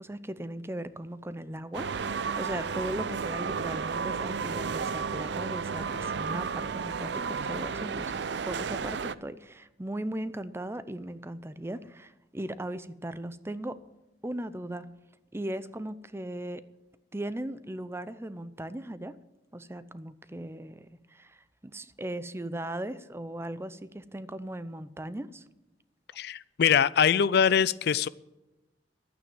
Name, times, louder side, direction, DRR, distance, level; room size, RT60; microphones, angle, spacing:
voice 1, 0.0-1.9 2.4-13.8 14.2-14.9 15.3-16.6 17.1-19.2 19.5-25.4, right 1 dB, 15° right, 14 dB, 0.6 m, -38 dB
sound 1, 1.7-9.1, right 5 dB, 70° right, 0.6 m, -32 dB
voice 2, 26.2-28.1, left 7 dB, 65° left, 19 dB, 0.4 m, -23 dB
12.0 x 9.2 x 9.5 m, 1.0 s
head